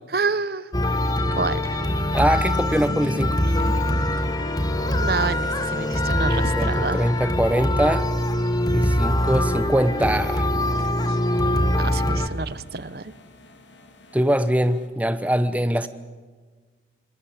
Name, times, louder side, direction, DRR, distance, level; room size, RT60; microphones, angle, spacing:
voice 1, 0.1-0.7 1.3-1.8 5.0-7.1 11.8-13.1, right 4 dB, 55° right, 16 dB, 0.8 m, -28 dB
sound 1, 0.7-12.3, left 1 dB, 20° left, 1.6 m, -23 dB
sound 2, 1.8-14.9, left 1 dB, 80° left, 3.0 m, -43 dB
voice 2, 2.1-3.4 6.3-8.1 8.7-10.5 14.1-15.9, equal, 10° right, 11 dB, 0.9 m, -22 dB
28.5 x 20.0 x 8.7 m, 1.4 s
head